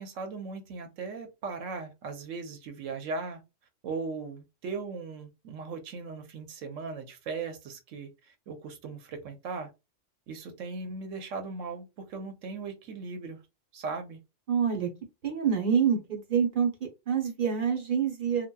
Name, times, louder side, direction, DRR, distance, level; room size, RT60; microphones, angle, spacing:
voice 1, 0.0-3.4 3.8-9.7 10.3-13.4 13.7-14.2, right 4 dB, 90° right, 1.0 m, -38 dB
voice 2, 14.5-14.9 15.2-16.7 17.1-18.5, right 7 dB, 50° right, 0.7 m, -26 dB
2.8 x 2.2 x 2.2 m
omnidirectional pair, 1.3 m